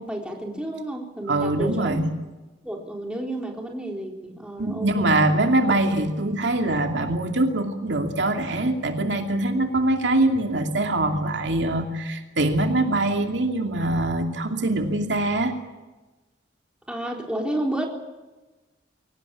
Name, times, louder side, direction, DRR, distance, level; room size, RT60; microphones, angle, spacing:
voice 1, 0.0-2.0 2.6-5.1 16.9-17.9, right 1 dB, 5° right, 0 dB, 3.8 m, -31 dB
voice 2, 1.3-2.1 4.6-15.6, right 2 dB, 65° right, 4 dB, 2.6 m, -23 dB
23.5 x 18.5 x 8.7 m, 1.2 s
head